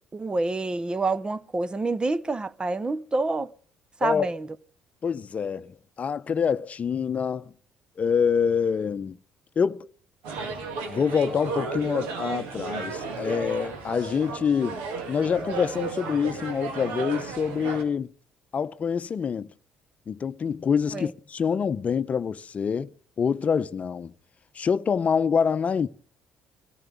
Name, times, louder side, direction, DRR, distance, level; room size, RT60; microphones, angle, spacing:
voice 1, 0.1-3.5 4.0-4.5 20.9-21.1, right 3 dB, 25° right, 0.8 m, -27 dB
voice 2, 4.0-4.3 5.0-7.5 8.0-9.2 9.6-9.9 10.9-14.8 15.1-18.1 18.5-19.5 20.1-22.9 23.2-24.1 24.5-25.9, left 6 dB, 45° left, 0.7 m, -26 dB
sound 1, 10.2-17.8, right 4 dB, 80° right, 2.5 m, -34 dB
22.0 x 14.5 x 3.5 m
hypercardioid pair, 55°, 3 cm